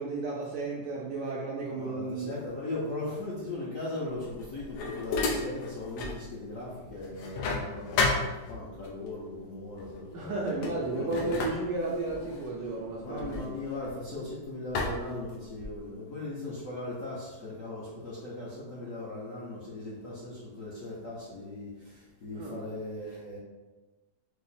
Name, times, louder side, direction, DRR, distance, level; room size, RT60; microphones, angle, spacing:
voice 1, 0.0-2.3 10.1-13.5 22.3-22.6, right 3 dB, 75° right, -4 dB, 1.0 m, -33 dB
voice 2, 1.7-8.2 8.5-10.7 10.9-11.6 13.0-21.7 22.2-23.4, left 2 dB, 65° left, -8 dB, 0.8 m, -38 dB
sound 1, 4.2-6.2 6.6-8.9 9.8-10.0 10.4-14.2 14.7-15.9, left 3 dB, 90° left, 1.6 m, -33 dB
4.9 x 2.0 x 4.1 m, 1.2 s
omnidirectional pair, 2.4 m